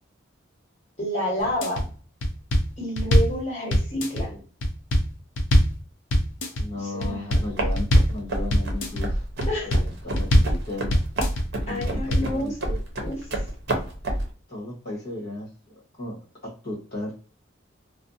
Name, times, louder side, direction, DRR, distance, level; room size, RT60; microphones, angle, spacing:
voice 1, 1.0-1.8 2.8-4.4 6.8-7.2 9.5-9.7 11.7-12.5 13.0-13.2, equal, 35° left, -4 dB, 1.4 m, -29 dB
sound 1, 1.4-1.8 2.2-3.4 3.7-4.2 4.6-5.8 6.1-6.6 7.0-7.5 7.8-8.2 8.5-9.0 9.4-9.9 10.2-10.6 10.9-11.4 11.8-12.3, equal, 70° left, 0.5 m, -21 dB
voice 2, 6.5-9.2 9.6-11.0 11.7-12.8 14.5-17.2, left 2 dB, 50° left, -4 dB, 1.1 m, -35 dB
sound 2, 7.3-14.3, right 1 dB, 50° right, 0.6 m, -29 dB
2.5 x 2.0 x 2.5 m, 0.37 s
head